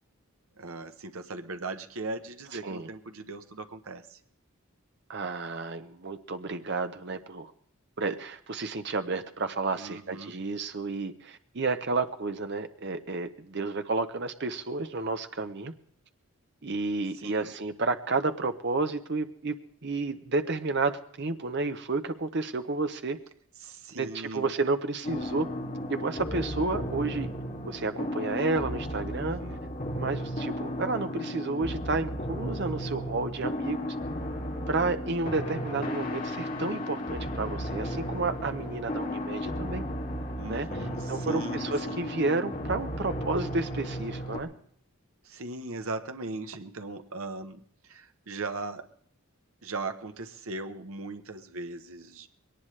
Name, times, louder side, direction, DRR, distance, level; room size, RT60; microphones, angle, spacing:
voice 1, 0.6-4.2 9.7-10.3 17.1-17.5 23.6-24.5 29.2-29.6 40.4-42.1 45.2-48.9 49.6-52.3, right 3 dB, 70° right, 8 dB, 1.0 m, -39 dB
voice 2, 5.1-7.5 8.0-15.7 16.6-19.5 19.8-23.2 23.9-25.5 25.9-27.3 27.6-29.4 29.9-34.0 34.7-39.8 40.5-40.7 41.1-44.5, right 3 dB, 50° right, 9 dB, 0.8 m, -31 dB
sound 1, 25.0-44.4, equal, 35° left, 2.8 m, -34 dB
21.0 x 18.5 x 3.3 m, 0.66 s
head